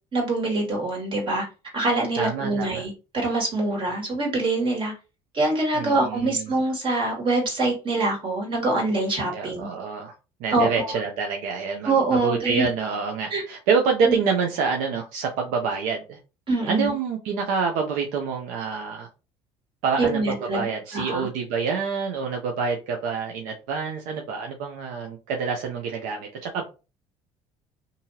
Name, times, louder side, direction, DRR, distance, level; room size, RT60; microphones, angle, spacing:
voice 1, 0.1-1.4 1.7-4.9 5.3-9.7 10.5-11.0 11.9-12.7 13.3-13.4 14.0-14.2 16.5-16.9 20.0-20.7 20.9-21.3, right 2 dB, 40° right, 0 dB, 1.8 m, -24 dB
voice 2, 2.2-2.8 5.7-6.5 9.3-10.1 10.4-16.2 16.7-19.1 19.8-20.2 20.5-26.6, right 5 dB, 75° right, 2 dB, 0.6 m, -27 dB
2.7 x 2.6 x 2.7 m, 0.30 s
supercardioid pair, 80°, 13 cm